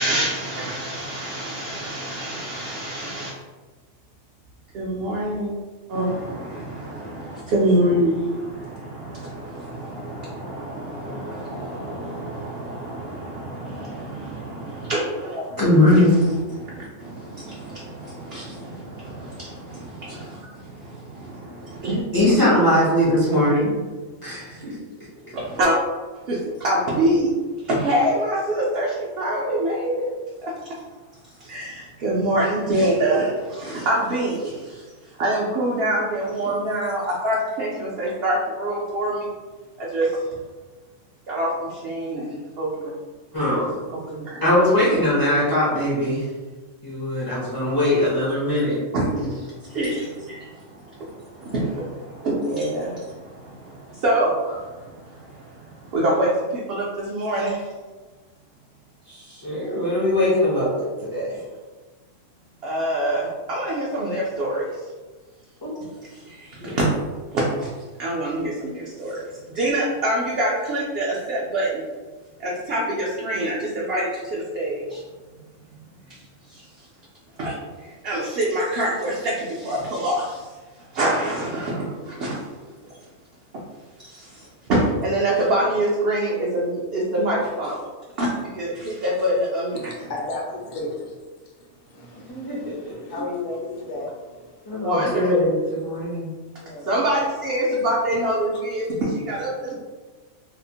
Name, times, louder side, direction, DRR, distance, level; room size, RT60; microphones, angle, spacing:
voice 1, 0.0-3.3 4.7-5.6 5.9-15.6 16.6-22.4 25.3-25.8 26.3-27.3 27.7-30.1 30.4-30.5 31.4-34.8 35.2-39.3 39.8-40.1 41.3-42.9 44.1-44.4 48.9-57.7 59.5-59.6 62.6-64.8 66.1-66.9 67.3-67.7 68.0-69.2 69.5-71.8 72.4-75.0 76.5-76.6 77.4-77.5 78.0-80.5 80.9-82.4 84.0-84.4 84.7-87.8 88.2-89.9 94.7-95.3 96.9-99.7, right 1 dB, 65° right, -5 dB, 0.6 m, -25 dB
voice 2, 15.6-16.1 22.1-23.8 24.2-24.8 43.3-43.7 44.4-46.2 46.8-48.8 49.1-49.3 59.1-60.8 61.1-61.4 65.6-65.7 66.6-66.7 92.3-92.9 94.7-96.3, left 1 dB, 30° left, -9 dB, 0.4 m, -20 dB
voice 3, 89.7-91.1 91.8-94.9 96.6-97.0, left 2 dB, 65° left, -2 dB, 0.9 m, -34 dB
2.8 x 2.0 x 2.6 m, 1.3 s
omnidirectional pair, 1.4 m